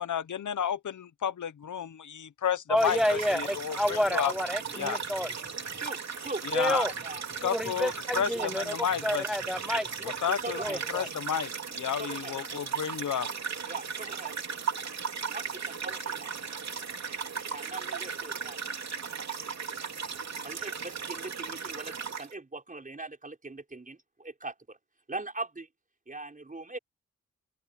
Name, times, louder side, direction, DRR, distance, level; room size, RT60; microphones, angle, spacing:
voice 1, 0.0-4.3 4.8-5.0 6.4-6.9 7.4-9.3 10.2-13.3, left 8 dB, 75° left, 0.9 m, -32 dB
voice 2, 2.7-5.3 6.5-6.9 7.4-8.8 9.0-10.1 10.6-11.1, equal, ahead, 0.4 m, -29 dB
sound 1, 2.8-22.3, right 6 dB, 60° right, 3.1 m, -36 dB
voice 3, 4.7-5.1 5.7-7.2 8.3-8.5 9.2-9.3 10.4-10.8 12.0-12.3 13.7-14.4 15.3-16.3 17.5-18.6 20.4-24.8 25.1-25.7 26.1-26.8, right 2 dB, 25° right, 5.1 m, -40 dB
open air
wide cardioid pair, 105°, 31 cm